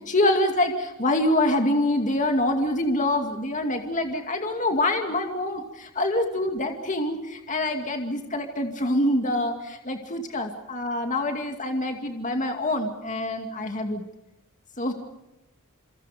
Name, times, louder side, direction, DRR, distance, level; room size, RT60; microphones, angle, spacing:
voice 1, 0.1-14.0 14.8-14.9, left 1 dB, 35° left, 4 dB, 2.4 m, -25 dB
28.0 x 26.5 x 5.1 m, 0.98 s
head